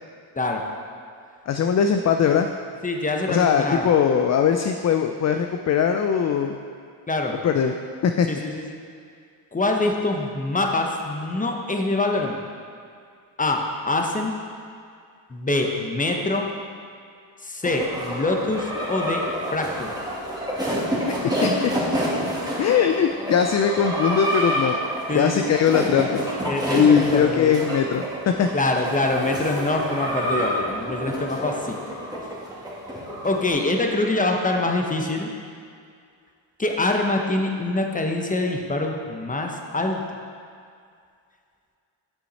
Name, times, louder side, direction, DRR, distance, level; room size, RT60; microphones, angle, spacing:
voice 1, 1.5-2.5 3.3-6.6 7.4-7.7 8.0-8.3 21.1-21.2 21.4-21.5 22.6-24.8 25.1-26.2 26.7-28.0 28.4-28.5, left 7 dB, 35° left, 6 dB, 0.4 m, -20 dB
voice 2, 2.8-3.9 7.1-7.4 8.3-8.8 9.5-12.4 13.4-14.3 15.3-16.5 17.4-19.2 19.5-19.9 25.1-25.5 26.4-27.6 28.5-31.8 33.2-35.3 36.6-40.0, left 2 dB, 15° left, 2 dB, 0.9 m, -24 dB
sound 1, 17.6-33.4, equal, 10° right, 2.1 m, -28 dB
8.2 x 6.2 x 4.1 m, 2.3 s
cardioid pair, 70°, 48 cm